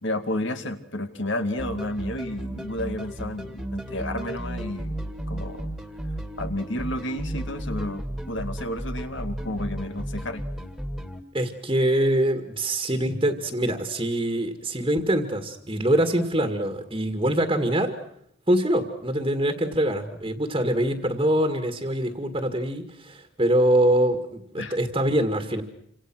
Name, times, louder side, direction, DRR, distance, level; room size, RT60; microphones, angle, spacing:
voice 1, 0.0-5.0 5.3-5.7 6.4-10.4 24.6-24.8, left 1 dB, 60° left, 7 dB, 2.4 m, -31 dB
sound 1, 1.6-11.2, right 1 dB, ahead, 2.5 m, -34 dB
voice 2, 11.3-17.9 18.5-25.6, right 1 dB, 25° right, 6 dB, 2.1 m, -24 dB
28.0 x 26.5 x 6.2 m, 0.73 s
head